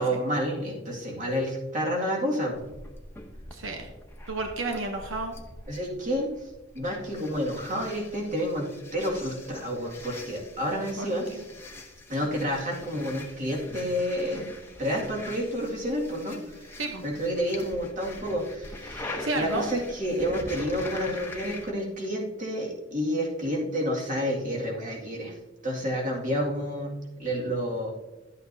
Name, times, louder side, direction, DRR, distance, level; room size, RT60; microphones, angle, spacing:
voice 1, 0.0-2.6 5.7-6.5 6.7-11.3 12.1-14.5 14.8-25.4 25.6-26.9 27.2-27.9, equal, 40° right, -2 dB, 2.2 m, -29 dB
sound 1, 2.5-21.7, left 2 dB, 15° left, 0.9 m, -43 dB
voice 2, 3.5-3.9 4.3-5.3 11.0-11.4 16.8-17.0 19.2-19.6, right 2 dB, 85° right, 4 dB, 0.9 m, -31 dB
12.0 x 8.3 x 2.7 m, 1.1 s
head